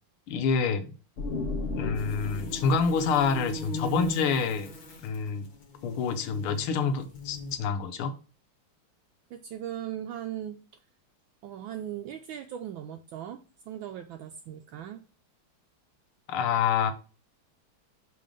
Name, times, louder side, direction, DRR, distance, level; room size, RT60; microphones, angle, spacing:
voice 1, 0.3-0.9 1.7-4.7 5.0-5.5 5.8-8.1 16.3-16.9, left 5 dB, 85° left, 1.7 m, -27 dB
sound 1, 1.2-4.8, left 3 dB, 50° left, 0.7 m, -36 dB
sound 2, 2.0-7.6, left 1 dB, 70° left, 2.0 m, -39 dB
voice 2, 9.3-10.6 11.4-15.0, right 10 dB, 75° right, 1.3 m, -38 dB
5.4 x 3.9 x 5.1 m
omnidirectional pair, 2.3 m